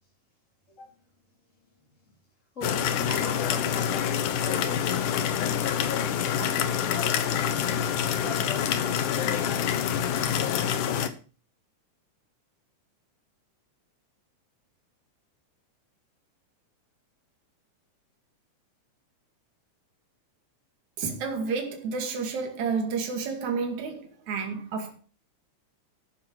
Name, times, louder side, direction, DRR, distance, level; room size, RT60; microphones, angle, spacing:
sound 1, 2.6-11.1, left 9 dB, 80° left, 2.6 m, -26 dB
voice 1, 2.6-7.4 8.2-9.1, left 2 dB, 25° left, 3.5 m, -41 dB
voice 2, 21.0-24.9, right 5 dB, 70° right, 3.6 m, -30 dB
13.5 x 9.6 x 4.7 m
omnidirectional pair, 3.5 m